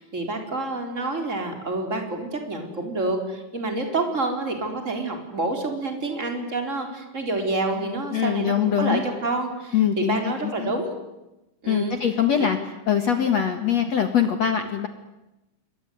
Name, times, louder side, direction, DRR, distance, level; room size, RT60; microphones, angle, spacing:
voice 1, 0.0-10.9 11.6-12.0, right 2 dB, 15° right, 4 dB, 4.2 m, -28 dB
voice 2, 8.1-9.0 9.7-10.7 11.7-12.6 12.9-14.9, left 8 dB, 60° left, 7 dB, 1.7 m, -23 dB
27.5 x 23.0 x 9.5 m, 0.97 s
omnidirectional pair, 5.3 m